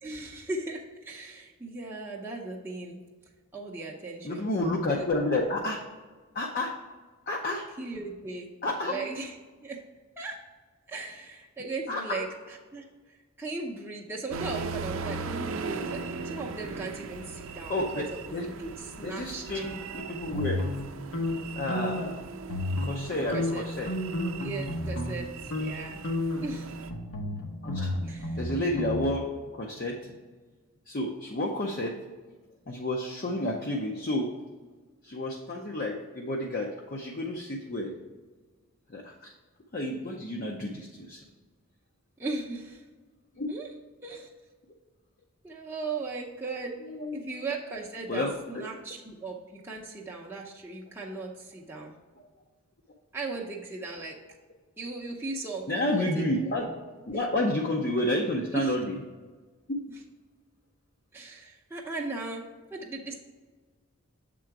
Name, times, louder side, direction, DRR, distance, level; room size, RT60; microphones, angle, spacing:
voice 1, 0.0-3.0 3.5-4.5 5.0-5.1 7.8-8.5 8.8-9.8 10.2-10.4 10.9-12.8 13.4-19.6 23.1-23.7 24.4-25.3 25.6-26.0 26.4-26.8 28.0-28.4 42.2-42.8 43.5-43.7 44.0-44.3 45.4-46.8 47.1-51.9 53.1-54.2 54.8-56.6 58.5-58.8 61.1-62.4 62.7-63.2, right 3 dB, 10° right, -3 dB, 0.6 m, -37 dB
voice 2, 4.2-5.8 6.3-6.7 7.3-7.7 8.6-9.0 11.9-12.2 17.7-18.5 19.0-20.6 21.6-22.2 22.8-23.9 27.6-27.9 28.4-30.0 30.9-32.0 32.7-34.3 35.0-37.9 38.9-39.3 39.7-41.2 43.4-43.5 46.9-47.1 48.1-48.4 55.7-56.7 57.1-58.9 59.7-59.8, left 1 dB, 40° left, -1 dB, 0.6 m, -30 dB
sound 1, 14.3-26.9, right 4 dB, 65° right, 0.5 m, -39 dB
sound 2, 20.3-22.2 22.4-23.1 23.3-25.2 25.5-25.7 26.0-29.0, left 1 dB, 80° left, 1.1 m, -32 dB
7.6 x 3.8 x 4.6 m, 1.4 s
head